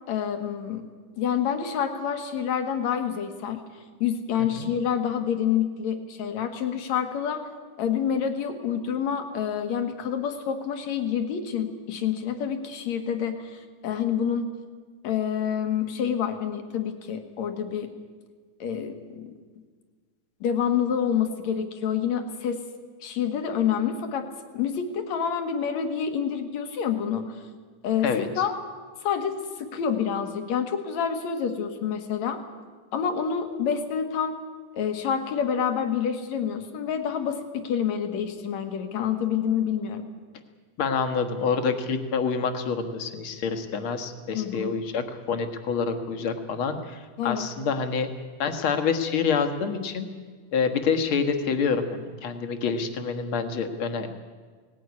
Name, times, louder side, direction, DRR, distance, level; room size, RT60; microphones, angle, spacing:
voice 1, 0.1-0.8 1.2-3.6 4.0-7.5 7.8-14.5 15.0-17.9 18.6-19.3 20.4-22.6 23.0-24.3 24.5-27.4 27.8-28.5 29.0-32.4 32.9-34.4 34.7-40.1 44.3-44.7 47.2-47.4, left 8 dB, 65° left, 8 dB, 2.8 m, -27 dB
voice 2, 40.8-48.1 48.4-50.1 50.5-54.1, left 5 dB, 50° left, 7 dB, 2.0 m, -27 dB
18.5 x 16.5 x 9.6 m, 1.5 s
omnidirectional pair, 3.5 m